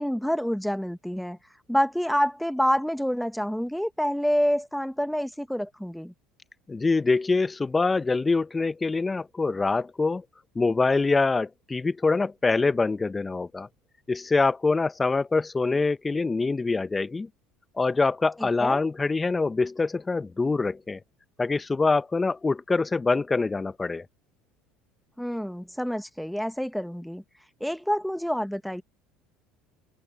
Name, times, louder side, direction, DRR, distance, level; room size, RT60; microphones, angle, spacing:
voice 1, 0.0-1.4 1.7-6.1 18.4-18.8 25.2-27.2 27.6-28.8, equal, ahead, 1.5 m, -27 dB
voice 2, 6.7-10.2 10.5-13.7 14.1-17.3 17.8-21.0 21.4-24.0, left 3 dB, 20° left, 1.0 m, -25 dB
hypercardioid pair, 70°, 0 cm